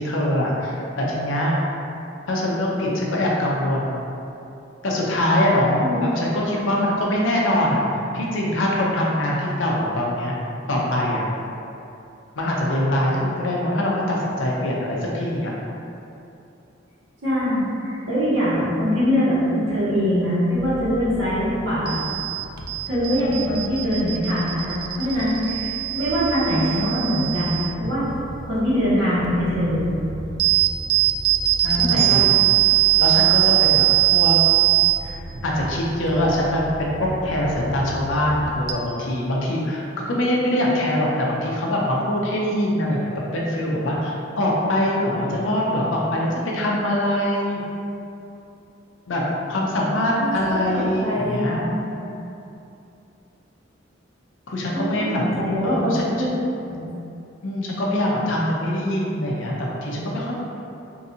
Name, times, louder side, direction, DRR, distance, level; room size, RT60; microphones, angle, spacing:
voice 1, 0.0-1.6 2.3-4.0 4.8-7.8 8.1-10.3 10.7-11.2 12.4-15.5 31.6-32.4 33.0-34.4 35.0-46.3 46.5-47.6 49.1-49.2 49.5-51.6 54.5-55.2 55.6-56.1 57.4-60.3, left 1 dB, 75° left, -3 dB, 0.6 m, -23 dB
voice 2, 5.8-6.2 17.2-22.0 22.9-28.0 28.4-29.9 31.7-32.2 50.2-52.0 54.7-56.3 56.6-56.9, equal, 75° right, -10 dB, 1.2 m, -23 dB
sound 1, 20.5-38.7, right 15 dB, 55° right, 0.3 m, -23 dB
3.8 x 2.6 x 2.7 m, 2.8 s
head